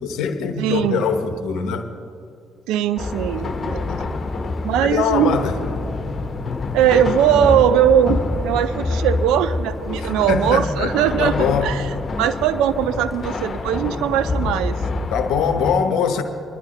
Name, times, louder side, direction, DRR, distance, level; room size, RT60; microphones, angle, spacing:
voice 1, 0.0-1.9 4.8-5.5 10.0-11.7 15.1-16.2, left 6 dB, 70° left, 0.9 m, -22 dB
voice 2, 0.6-1.0 2.7-4.0 4.6-5.4 6.7-11.8 12.2-14.8, right 9 dB, 75° right, 0.5 m, -20 dB
sound 1, 3.0-15.7, left 3 dB, 45° left, 1.1 m, -26 dB
23.5 x 11.0 x 3.0 m
hypercardioid pair, 45°, 0 cm